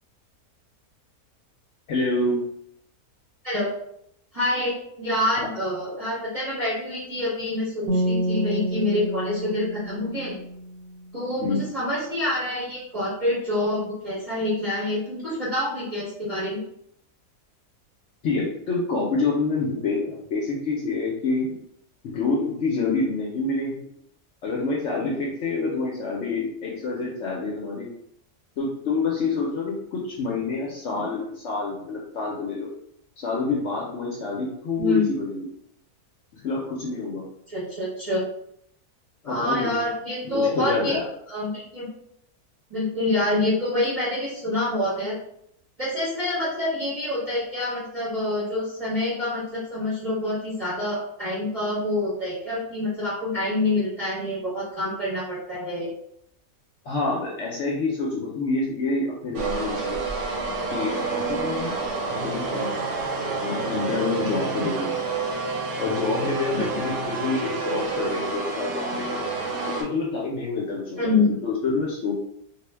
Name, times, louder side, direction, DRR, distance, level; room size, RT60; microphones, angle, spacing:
voice 1, 1.9-2.4 5.4-5.5 11.4-11.6 18.2-21.6 22.0-23.9 24.4-27.9 28.6-32.7 33.2-35.5 36.3-37.3 39.2-39.7 40.2-41.0 56.8-60.0 60.7-61.8 62.1-62.8 63.4-64.9 65.8-69.2 69.6-72.1, left 3 dB, 65° left, -3 dB, 0.7 m, -27 dB
voice 2, 4.3-10.4 11.1-16.6 34.8-35.1 37.5-38.2 39.2-40.9 41.3-41.9 42.7-45.1 45.8-55.9 66.5-66.8 71.0-71.4, left 1 dB, 35° right, -8 dB, 0.6 m, -26 dB
sound 1, 7.9-11.1, right 1 dB, 90° right, 1.2 m, -28 dB
sound 2, 59.3-69.8, right 4 dB, 65° right, 0.8 m, -29 dB
2.4 x 2.1 x 3.2 m, 0.74 s
omnidirectional pair, 1.6 m